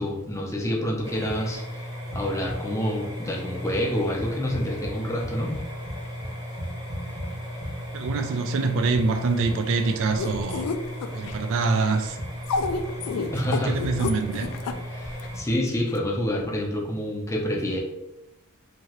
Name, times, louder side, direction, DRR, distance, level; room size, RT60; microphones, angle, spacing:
voice 1, 0.0-1.8 2.1-5.5 13.3-13.8 14.9-17.8, equal, 15° left, -1 dB, 0.5 m, -27 dB
sound 1, 1.0-15.4, equal, 20° right, 0.8 m, -35 dB
voice 2, 7.9-10.7 11.1-12.2 13.7-14.5, right 4 dB, 60° right, 7 dB, 0.3 m, -25 dB
sound 2, 10.2-11.3 12.4-14.7 15.2-15.3 15.9-16.0, left 5 dB, 85° left, 0.3 m, -28 dB
2.9 x 2.7 x 2.9 m, 0.93 s
head